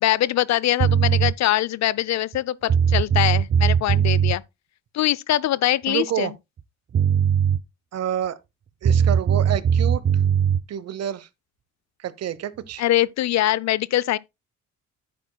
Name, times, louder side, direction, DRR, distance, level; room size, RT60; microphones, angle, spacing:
voice 1, 0.0-4.4 4.9-6.3 12.8-14.2, left 14 dB, 65° left, 0.5 m, -23 dB
sound 1, 0.8-1.3 2.3-2.4 2.7-4.4 6.6-6.7 6.9-7.6 8.8-10.6, right 8 dB, 35° right, 0.5 m, -19 dB
voice 2, 5.9-6.3 7.9-8.4 8.8-10.0 10.7-11.3 12.0-12.8, right 10 dB, 55° right, 0.9 m, -28 dB
10.5 x 8.8 x 2.2 m
cardioid pair, 90°, 30 cm